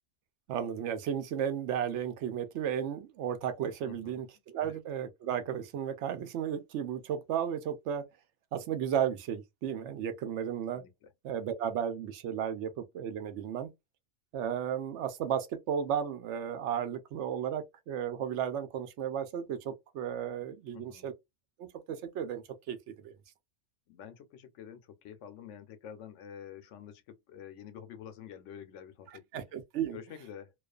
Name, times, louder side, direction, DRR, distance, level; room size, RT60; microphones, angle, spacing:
voice 1, 0.5-4.3 4.5-8.0 8.5-10.8 11.2-13.7 14.3-21.1 21.6-23.1 29.3-30.0, right 9 dB, 75° right, 0.9 m, -34 dB
voice 2, 3.8-4.2 4.6-4.8 10.7-11.1 20.7-21.1 23.9-29.4 29.9-30.5, left 9 dB, 80° left, 0.9 m, -48 dB
2.4 x 2.3 x 2.3 m
omnidirectional pair, 1.2 m